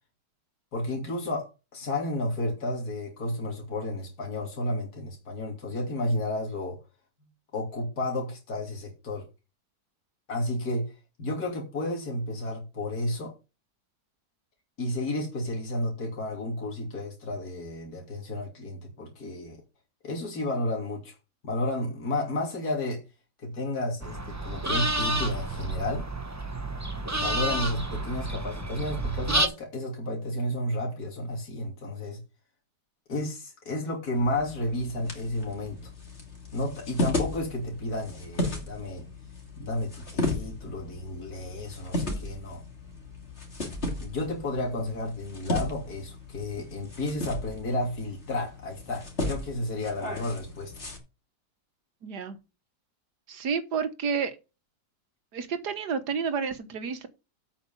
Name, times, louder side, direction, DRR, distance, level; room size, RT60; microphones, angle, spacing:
voice 1, 0.7-6.8 7.5-9.3 10.3-10.9 11.2-13.3 14.8-19.6 20.0-21.1 21.4-23.0 23.4-26.1 27.1-32.2 33.1-35.8 36.5-39.0 39.6-42.6 44.0-50.8, left 1 dB, 60° left, 3.4 m, -32 dB
sound 1, 24.0-29.5, right 2 dB, 15° right, 0.7 m, -30 dB
sound 2, 34.1-51.0, left 1 dB, 35° left, 3.0 m, -35 dB
voice 2, 52.0-52.4 53.3-54.4 55.3-57.1, right 6 dB, 70° right, 1.9 m, -30 dB
8.5 x 5.9 x 7.2 m
omnidirectional pair, 1.9 m